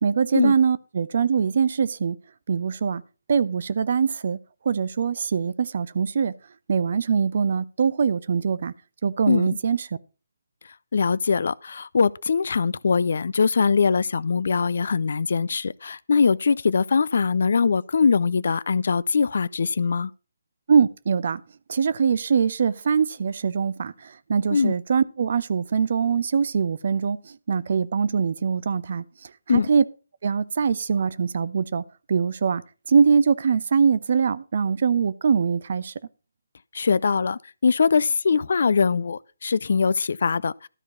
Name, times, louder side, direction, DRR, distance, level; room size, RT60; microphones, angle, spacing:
voice 1, 0.0-2.2 2.5-3.0 3.3-4.4 4.7-6.3 6.7-8.7 9.0-9.8 20.7-21.4 21.7-23.9 24.3-27.2 27.5-29.0 29.5-29.8 30.2-32.6 32.9-35.9, right 6 dB, 50° right, 0.7 m, -22 dB
voice 2, 10.9-20.1 24.5-24.7 29.5-29.7 36.7-40.7, left 5 dB, 60° left, 0.4 m, -22 dB
12.5 x 4.6 x 6.8 m
figure-of-eight pair, 145°, 0 cm